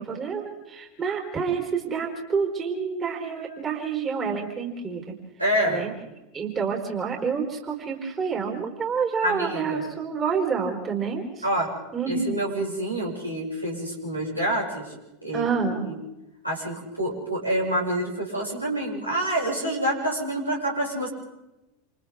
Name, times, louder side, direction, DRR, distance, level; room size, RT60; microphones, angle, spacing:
voice 1, 0.0-5.2 5.6-5.9 6.3-11.4 11.9-12.2 15.3-15.9, right 6 dB, 25° right, 2 dB, 4.4 m, -28 dB
voice 2, 5.4-5.9 9.2-9.8 11.4-11.7 12.1-14.9 15.2-15.9 16.4-21.1, right 1 dB, 85° right, -4 dB, 6.6 m, -27 dB
28.5 x 28.5 x 3.7 m, 0.96 s
figure-of-eight pair, 85°, 0 cm